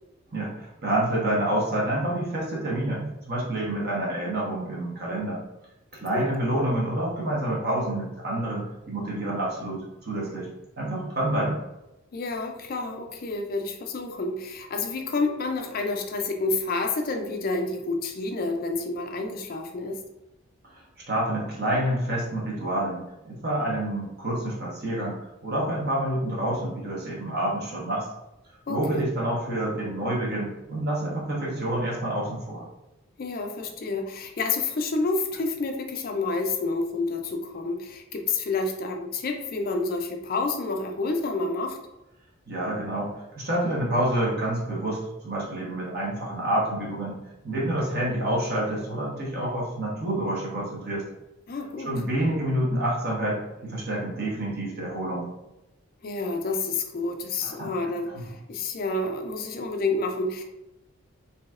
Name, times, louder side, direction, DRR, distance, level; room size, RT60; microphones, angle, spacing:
voice 1, 0.3-5.4 5.9-10.5 10.8-11.6 20.7-28.1 28.7-32.7 42.5-47.2 47.4-51.0 51.8-55.3 57.4-57.7 58.1-58.2, right 1 dB, 50° right, -4 dB, 1.2 m, -28 dB
voice 2, 12.1-20.0 28.7-29.1 33.2-41.8 51.5-51.9 56.0-60.4, left 3 dB, 45° left, 4 dB, 0.4 m, -29 dB
4.0 x 2.8 x 2.4 m, 0.92 s
head